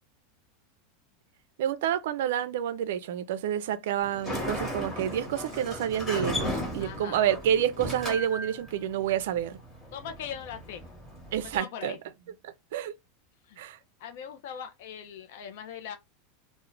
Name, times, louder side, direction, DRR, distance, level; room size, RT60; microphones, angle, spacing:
voice 1, 1.6-9.6 11.3-12.0 12.4-12.9 13.6-13.8, right 10 dB, 75° right, 0.3 m, -29 dB
Sliding door, 4.0-11.6, equal, 10° left, 1.0 m, -36 dB
voice 2, 6.8-7.3 9.9-10.8 11.4-12.0 13.5-13.6 14.0-16.0, left 8 dB, 70° left, 0.4 m, -40 dB
2.3 x 2.1 x 3.1 m
supercardioid pair, 150°, 0 cm